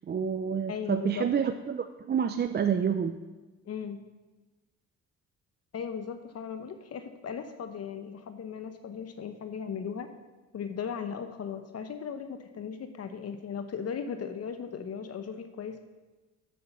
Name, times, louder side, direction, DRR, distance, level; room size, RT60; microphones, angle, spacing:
voice 1, 0.1-3.2, right 7 dB, 35° right, 8 dB, 0.5 m, -28 dB
voice 2, 0.7-1.3 3.7-4.0 5.7-10.1 10.5-15.8, left 7 dB, 55° left, 8 dB, 0.9 m, -37 dB
8.6 x 7.4 x 6.8 m, 1.2 s
cardioid pair, 90°, 30 cm